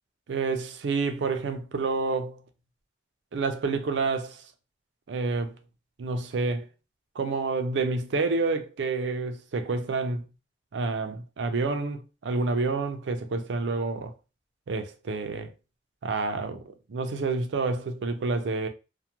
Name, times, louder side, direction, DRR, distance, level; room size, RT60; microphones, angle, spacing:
voice 1, 0.3-2.4 3.3-4.4 5.1-5.6 6.0-6.7 7.2-10.2 10.7-14.1 14.7-15.5 16.0-18.7, right 3 dB, 85° right, 0.4 m, -28 dB
2.3 x 2.1 x 2.8 m
head